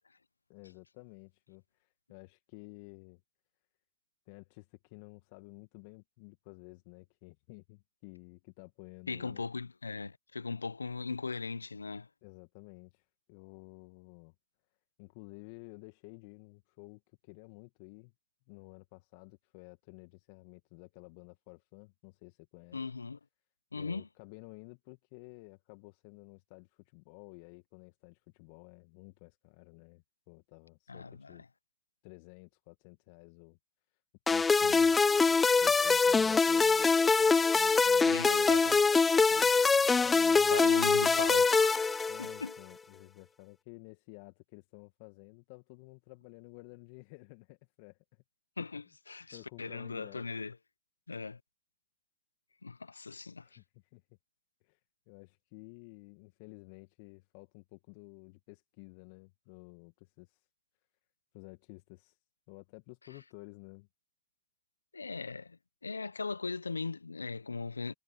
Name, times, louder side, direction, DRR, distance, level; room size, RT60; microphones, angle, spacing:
voice 1, 0.5-3.2 4.3-9.4 12.2-14.3 15.0-18.1 18.5-22.8 23.7-31.4 32.0-33.6 34.3-35.0 35.6-36.9 37.5-38.4 40.0-41.2 42.1-48.0 49.3-50.3 53.4-54.0 54.6-54.8 55.1-60.4 61.3-62.2 62.5-63.9, left 28 dB, 60° left, 2.0 m, -53 dB
voice 2, 9.1-12.1 22.7-23.2 23.7-24.1 30.9-31.4 34.6-35.0 35.3-35.4 38.1-39.0 39.3-39.5 40.5-41.9 42.2-42.5 48.6-50.5 51.1-51.4 52.6-53.5 64.9-67.9, left 4 dB, 90° left, 1.0 m, -39 dB
sound 1, 34.3-42.5, left 4 dB, 20° left, 0.4 m, -24 dB
figure-of-eight pair, 75°, 0 cm